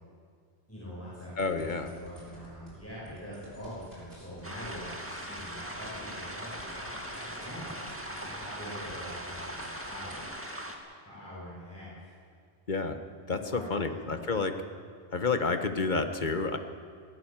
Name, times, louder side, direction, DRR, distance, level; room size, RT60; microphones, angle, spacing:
voice 1, 0.7-7.8 8.1-10.3 11.0-12.2 13.4-14.2, equal, 10° left, -8 dB, 6.5 m, -44 dB
voice 2, 1.4-1.9 12.7-13.0 13.3-14.5 15.1-16.6, left 4 dB, 45° left, 7 dB, 1.4 m, -29 dB
sound 1, 1.4-2.7 3.0-8.5 8.8-10.2, equal, 60° right, 7.2 m, -52 dB
sound 2, 4.4-10.7, equal, 10° right, 2.0 m, -40 dB
21.0 x 18.0 x 7.4 m, 2.2 s
omnidirectional pair, 1.1 m